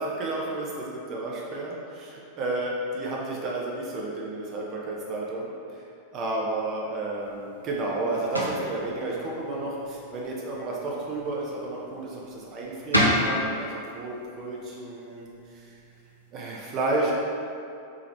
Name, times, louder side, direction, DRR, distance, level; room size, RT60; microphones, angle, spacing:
voice 1, 0.0-5.8 6.1-15.3 15.5-15.7 16.3-17.1, right 2 dB, 35° right, -3 dB, 0.6 m, -31 dB
sound 1, 7.1-16.3, equal, 90° right, 0.5 m, -32 dB
3.6 x 2.8 x 3.3 m, 2.5 s
figure-of-eight pair, 90°, 0 cm